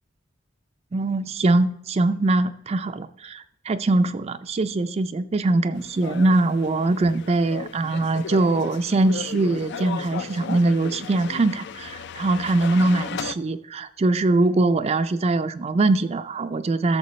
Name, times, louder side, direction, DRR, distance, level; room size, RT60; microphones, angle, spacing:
voice 1, 0.9-17.0, right 2 dB, 35° right, 10 dB, 0.4 m, -22 dB
sound 1, 5.7-13.4, left 6 dB, 60° left, 0.4 m, -36 dB
13.0 x 6.8 x 3.2 m, 0.74 s
head